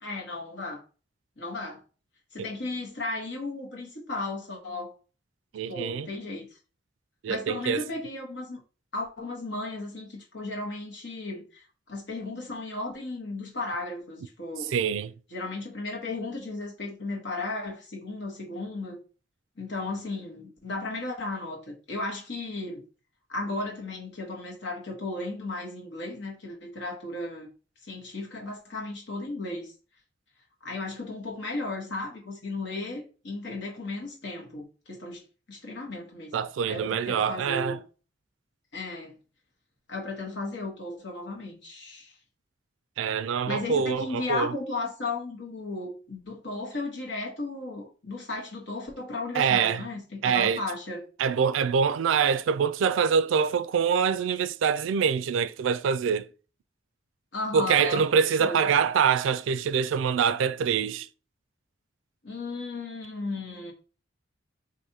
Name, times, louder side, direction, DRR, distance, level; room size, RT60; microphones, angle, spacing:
voice 1, 0.0-0.8 1.4-1.8 2.3-4.9 5.7-6.6 7.3-8.6 8.9-11.6 11.9-14.8 15.3-19.0 19.6-22.8 23.3-27.5 27.8-29.7 30.6-35.2 35.5-37.8 38.7-39.2 39.9-42.1 43.5-51.1 57.3-58.1 58.4-58.6 62.2-63.7, left 2 dB, 70° left, 1.2 m, -35 dB
voice 2, 5.5-6.1 7.2-7.9 14.7-15.1 36.3-37.8 43.0-44.5 49.3-49.8 50.2-50.6 51.2-56.3 57.5-61.1, right 6 dB, 90° right, 0.3 m, -25 dB
4.8 x 2.6 x 2.7 m
head